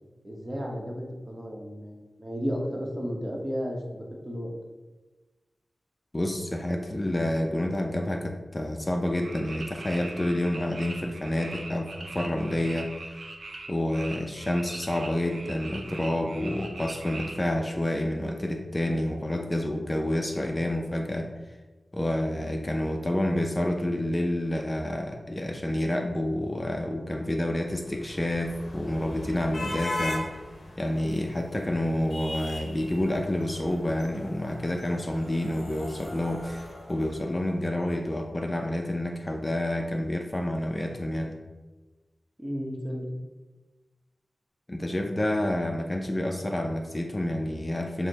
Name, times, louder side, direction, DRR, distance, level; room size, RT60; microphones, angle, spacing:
voice 1, 0.2-4.5 42.4-43.1, equal, 20° right, -1 dB, 0.9 m, -33 dB
voice 2, 6.1-13.2 13.7-21.3 21.9-30.3 30.8-41.3 44.7-48.1, left 1 dB, 25° left, 3 dB, 0.4 m, -29 dB
sound 1, 9.2-17.3, right 2 dB, 75° right, 0.6 m, -41 dB
sound 2, 27.4-37.7, left 1 dB, 60° left, 0.9 m, -39 dB
6.3 x 2.1 x 3.9 m, 1.2 s
wide cardioid pair, 85°, 0 cm